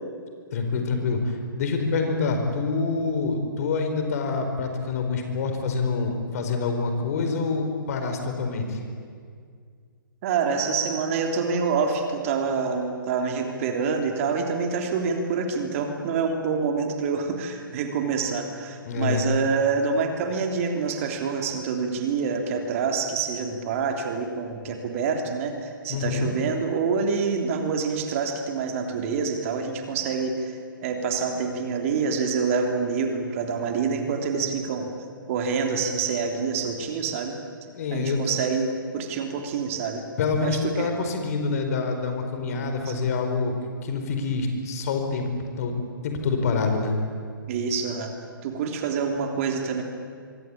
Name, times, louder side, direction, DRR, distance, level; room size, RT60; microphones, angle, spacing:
voice 1, 0.5-8.8 18.8-19.2 25.9-26.3 37.7-38.3 40.2-43.5 43.8-45.8 46.0-47.0, left 4 dB, 45° left, 5 dB, 4.8 m, -26 dB
voice 2, 10.2-34.9 35.3-37.4 37.9-40.1 40.4-40.9 42.8-42.9 47.5-48.1 48.4-49.8, right 5 dB, 40° right, 4 dB, 3.3 m, -26 dB
25.5 x 24.0 x 8.7 m, 2.1 s
figure-of-eight pair, 125°, 12 cm